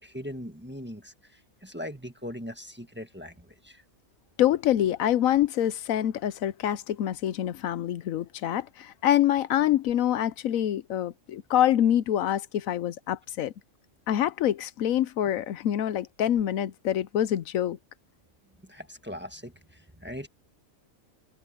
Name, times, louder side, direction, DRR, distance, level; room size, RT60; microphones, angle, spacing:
voice 1, 0.0-3.8 18.6-20.3, equal, 10° right, 1.4 m, -40 dB
voice 2, 4.4-13.5 14.1-17.8, left 11 dB, 80° left, 1.1 m, -26 dB
omnidirectional pair, 1.4 m